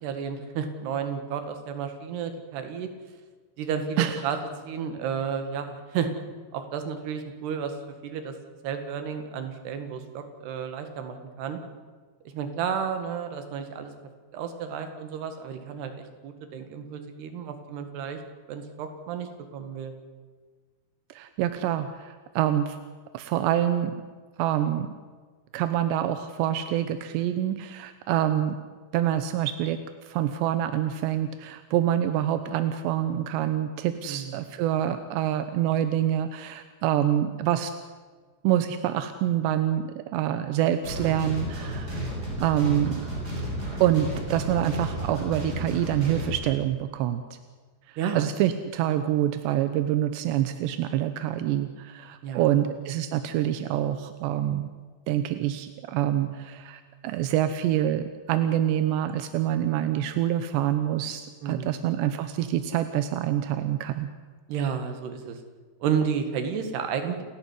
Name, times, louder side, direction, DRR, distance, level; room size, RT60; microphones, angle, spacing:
voice 1, 0.0-2.9 3.6-4.4 4.7-6.1 6.5-7.7 8.0-8.4 8.6-11.6 12.3-13.9 14.3-18.2 18.5-19.9 34.1-34.4 48.0-48.2 52.2-52.6 61.4-61.8 64.5-65.4 65.8-67.2, right 7 dB, 75° right, 7 dB, 4.0 m, -32 dB
voice 2, 21.1-22.8 23.1-24.0 24.4-24.9 25.5-28.6 28.9-29.8 30.0-37.7 38.4-42.0 42.4-42.9 43.8-47.2 47.9-54.7 55.1-64.1, right 11 dB, 90° right, 10 dB, 3.2 m, -26 dB
sound 1, 40.8-46.4, equal, 20° right, 7.6 m, -33 dB
29.5 x 12.0 x 9.8 m, 1.5 s
omnidirectional pair, 4.9 m